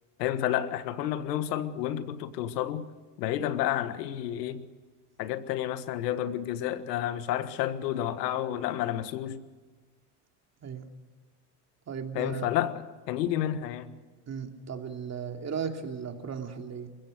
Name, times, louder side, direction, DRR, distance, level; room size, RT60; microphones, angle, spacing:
voice 1, 0.2-2.9 3.2-4.7 5.2-9.4 12.1-13.9, left 11 dB, 90° left, 1.6 m, -30 dB
voice 2, 11.9-12.5 14.3-16.9, right 6 dB, 35° right, 2.8 m, -36 dB
28.5 x 16.0 x 6.6 m
supercardioid pair, 105°, 48 cm